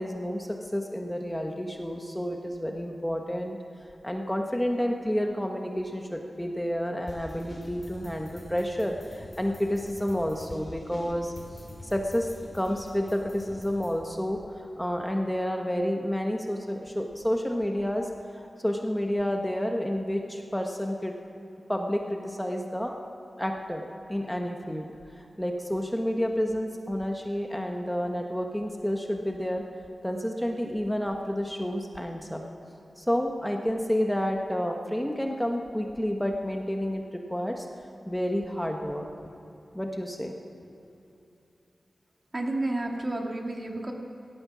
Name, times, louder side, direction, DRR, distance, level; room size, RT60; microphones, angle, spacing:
voice 1, 0.0-3.6 4.0-11.3 11.8-21.1 21.7-22.9 23.4-24.8 25.2-29.6 30.0-32.4 33.0-37.7 38.1-39.1 39.7-40.3, equal, 5° left, 2 dB, 1.2 m, -30 dB
sound 1, 7.1-13.9, left 1 dB, 35° left, 4.4 m, -46 dB
voice 2, 42.3-43.9, right 2 dB, 35° right, 1 dB, 2.1 m, -30 dB
17.5 x 13.5 x 6.2 m, 2.9 s
wide cardioid pair, 80°, 0 cm